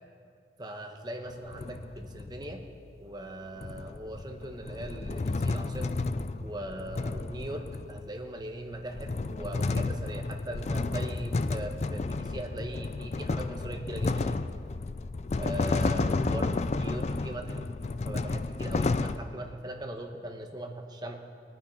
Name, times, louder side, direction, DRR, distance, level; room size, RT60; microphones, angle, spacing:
voice 1, 0.6-2.6 3.0-6.0 6.4-14.4 15.4-17.6 18.0-21.2, right 1 dB, 25° right, 4 dB, 1.0 m, -40 dB
sound 1, 1.3-2.6 3.6-8.2 8.7-19.2, left 3 dB, 40° left, 0.4 m, -32 dB
20.5 x 9.2 x 4.6 m, 2.3 s
head